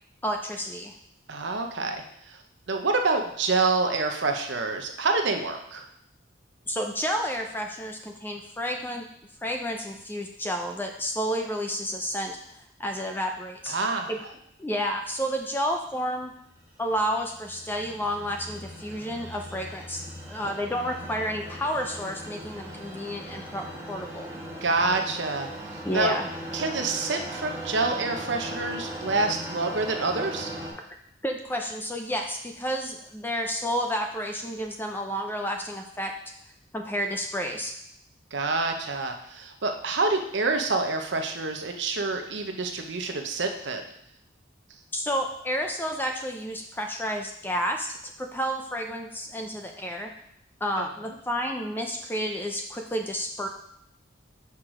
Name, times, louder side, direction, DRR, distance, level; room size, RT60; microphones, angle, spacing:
voice 1, 0.2-0.9 6.7-9.1 9.4-12.4 12.8-13.8 14.1-14.2 14.6-16.3 16.8-20.0 20.3-24.3 25.8-26.3 31.2-36.1 36.7-37.7 44.9-50.1 50.6-53.5, equal, 10° left, 3 dB, 0.5 m, -30 dB
voice 2, 1.3-2.4 2.7-5.9 13.7-14.1 24.6-26.2 26.5-30.5 38.3-43.8 50.8-50.9, right 3 dB, 70° right, 5 dB, 0.8 m, -27 dB
sound 1, 16.6-30.7, right 1 dB, 15° right, 1.2 m, -39 dB
5.9 x 4.7 x 4.9 m, 0.71 s
head